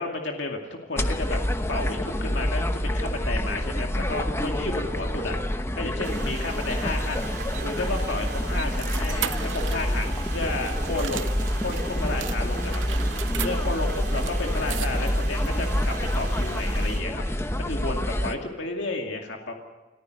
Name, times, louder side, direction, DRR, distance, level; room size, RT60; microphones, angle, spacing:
voice 1, 0.0-1.4 1.7-5.4 5.8-7.3 7.6-12.8 13.4-17.2 17.6-19.5, left 2 dB, 65° left, 2 dB, 2.4 m, -32 dB
sound 1, 1.0-18.3, equal, 15° left, 1.0 m, -27 dB
sound 2, 6.0-17.0, right 5 dB, 55° right, 3.1 m, -40 dB
sound 3, 7.1-11.8 12.2-15.3, right 11 dB, 75° right, 0.7 m, -38 dB
30.0 x 14.5 x 6.5 m, 1.2 s
head